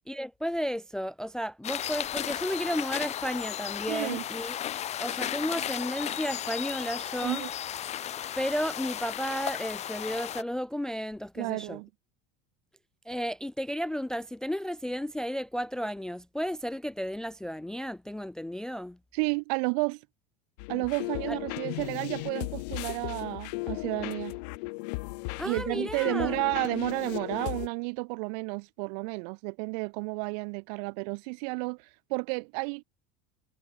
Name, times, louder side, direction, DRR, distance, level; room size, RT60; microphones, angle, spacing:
voice 1, 0.1-4.6 5.0-7.4 8.4-11.8 13.1-19.0 21.3-21.4 25.4-26.4, equal, 5° left, 0.3 m, -33 dB
sound 1, 1.6-10.4, left 11 dB, 30° left, 2.8 m, -34 dB
voice 2, 3.9-4.2 7.2-7.5 11.4-11.9 19.1-20.0 20.7-24.3 25.4-32.8, right 36 dB, 70° right, 1.5 m, -32 dB
sound 2, 20.6-27.7, left 27 dB, 75° left, 4.5 m, -36 dB
cardioid pair, 160°, 21 cm